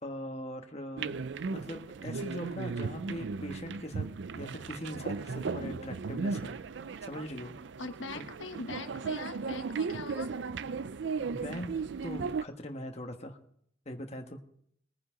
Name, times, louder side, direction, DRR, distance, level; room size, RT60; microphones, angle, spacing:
voice 1, 0.0-1.2 1.5-4.1 4.3-6.5 7.0-7.5 8.1-8.3 11.3-13.4 13.8-14.4, left 1 dB, 35° left, 4 dB, 1.4 m, -41 dB
sound 1, 1.0-12.4, right 4 dB, 65° right, 0.4 m, -36 dB
voice 2, 7.8-10.3, left 3 dB, 90° left, 6 dB, 1.2 m, -42 dB
21.0 x 9.7 x 3.8 m, 0.68 s
head